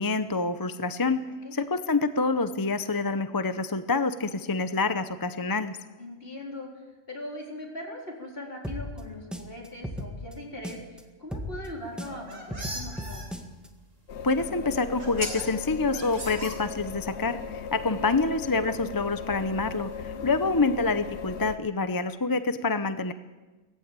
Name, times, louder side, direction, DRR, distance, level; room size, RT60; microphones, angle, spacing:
voice 1, 0.0-1.2 1.5-5.8 14.2-23.1, left 3 dB, 25° left, 11 dB, 0.5 m, -27 dB
voice 2, 1.3-1.6 6.0-6.7 7.1-13.3 17.9-18.1 20.0-20.6, left 1 dB, 45° left, -1 dB, 4.2 m, -40 dB
sound 1, 8.6-11.0 11.3-13.7, left 1 dB, ahead, 1.6 m, -37 dB
sound 2, 11.9-13.2 14.4-14.5 15.0-15.4 15.9-17.0, right 1 dB, 85° right, 6.4 m, -37 dB
sound 3, 14.1-21.6, left 6 dB, 65° left, 1.0 m, -37 dB
19.5 x 15.0 x 8.9 m, 1.2 s
omnidirectional pair, 1.3 m